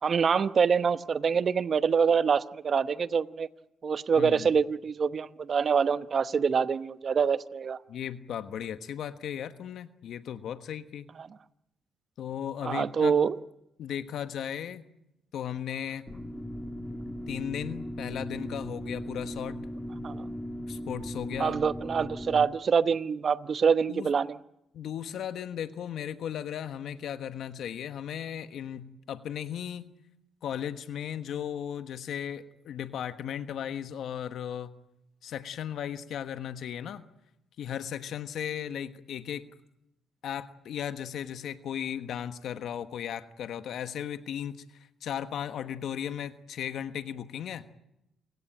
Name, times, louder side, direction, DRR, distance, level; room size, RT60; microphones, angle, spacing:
voice 1, 0.0-3.5 3.8-7.8 11.2-11.3 12.6-13.4 20.0-20.3 21.4-24.4, right 6 dB, 45° right, 14 dB, 0.9 m, -25 dB
voice 2, 4.2-4.5 7.9-11.0 12.2-13.2 13.8-14.9 15.3-16.0 17.3-19.6 20.7-21.5 23.9-24.1 24.7-29.9 30.4-34.7 35.2-37.1 37.6-39.4 40.2-44.6 45.0-47.7, left 9 dB, 70° left, 10 dB, 1.3 m, -36 dB
sound 1, 16.1-22.5, equal, 5° left, 2.7 m, -38 dB
29.0 x 17.0 x 8.9 m, 0.86 s
cardioid pair, 90°, 0 cm